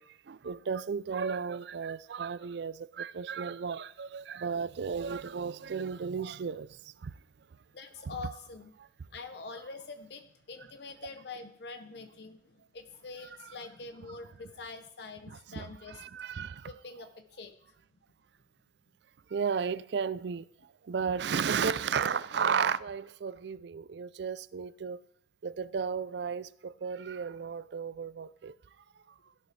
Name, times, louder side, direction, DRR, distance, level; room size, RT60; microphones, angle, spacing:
voice 1, 0.0-7.1 8.0-8.2 13.4-13.5 15.3-16.7 19.3-20.5 20.8-25.0 25.4-28.5, right 6 dB, 65° right, 0.4 m, -34 dB
voice 2, 7.7-8.7 9.1-16.0 16.6-17.5, left 3 dB, 60° left, 0.7 m, -45 dB
16.0 x 11.5 x 3.3 m
head